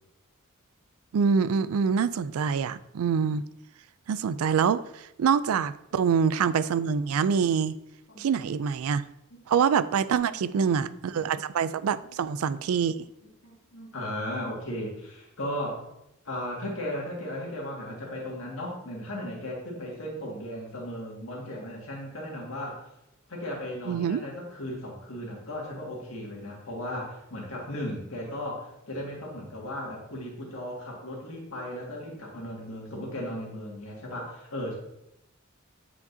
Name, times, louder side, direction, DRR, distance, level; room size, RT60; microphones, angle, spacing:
voice 1, 1.1-3.4 4.1-7.8 8.2-9.0 9.5-13.0 23.9-24.2, right 6 dB, 70° right, 15 dB, 0.3 m, -25 dB
voice 2, 10.5-11.2 12.1-12.6 12.8-13.0 13.4-15.9 16.3-22.8 23.3-34.8, left 1 dB, 65° left, -2 dB, 1.9 m, -36 dB
8.0 x 5.0 x 2.7 m, 0.83 s
head